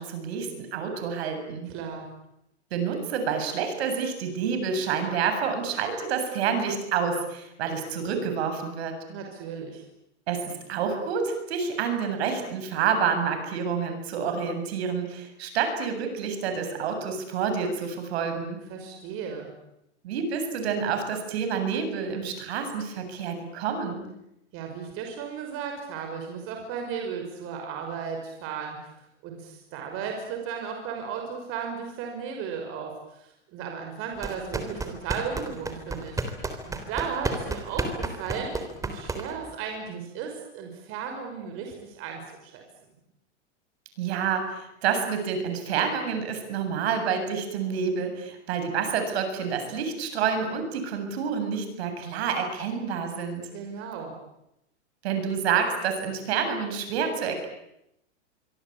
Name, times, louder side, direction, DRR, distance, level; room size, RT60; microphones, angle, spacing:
voice 1, 0.0-1.7 2.7-9.0 10.3-18.6 20.0-24.1 44.0-53.5 55.0-57.5, right 6 dB, 60° right, 7 dB, 7.6 m, -28 dB
voice 2, 1.7-2.1 9.1-9.8 18.7-19.5 24.5-28.9 29.2-36.2 36.7-38.5 38.8-42.6 53.5-54.1, right 6 dB, 40° right, 3 dB, 5.9 m, -35 dB
sound 1, 34.2-39.5, right 3 dB, 10° right, 3.6 m, -32 dB
25.5 x 24.5 x 8.8 m, 0.83 s
hypercardioid pair, 140°, 35 cm